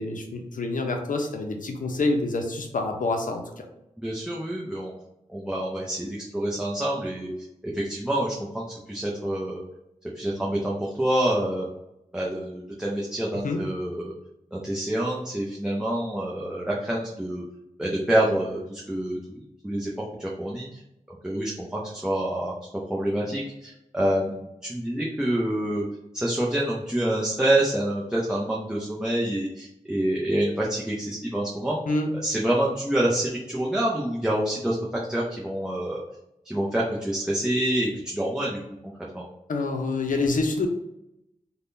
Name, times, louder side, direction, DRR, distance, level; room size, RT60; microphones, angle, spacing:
voice 1, 0.0-3.6 13.4-13.6 31.9-32.1 39.5-40.7, left 3 dB, 80° left, 3 dB, 0.5 m, -27 dB
voice 2, 4.0-4.9 5.3-7.3 7.7-9.6 10.1-11.7 12.1-14.1 14.5-17.4 17.8-19.9 20.2-20.8 21.1-25.8 26.1-31.8 32.2-34.8 35.1-36.0 36.4-39.2, right 1 dB, 5° right, -5 dB, 0.5 m, -27 dB
3.4 x 2.2 x 2.6 m, 0.86 s
wide cardioid pair, 85°, 14 cm